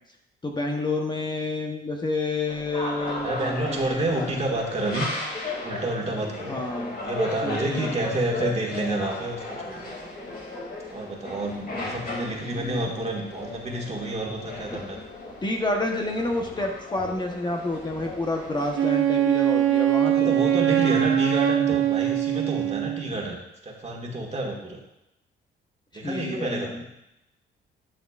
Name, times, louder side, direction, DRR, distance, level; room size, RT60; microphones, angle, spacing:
voice 1, 0.4-4.1 4.5-4.6 6.5-6.9 7.4-8.5 12.0-12.9 14.7-14.8 15.4-20.6 21.7-21.8 25.9-26.8, left 2 dB, 20° left, 1 dB, 1.0 m, -30 dB
sound 1, 2.5-18.9, left 2 dB, 50° left, 2.6 m, -36 dB
voice 2, 3.2-5.1 5.6-6.6 7.0-9.8 10.9-15.0 20.1-23.4 23.6-24.8 25.9-26.7, right 2 dB, 35° right, -1 dB, 1.9 m, -29 dB
Wind instrument woodwind instrument, 18.7-23.1, right 11 dB, 80° right, 0.8 m, -22 dB
11.5 x 6.3 x 2.5 m, 0.86 s
cardioid pair, 90°, 20 cm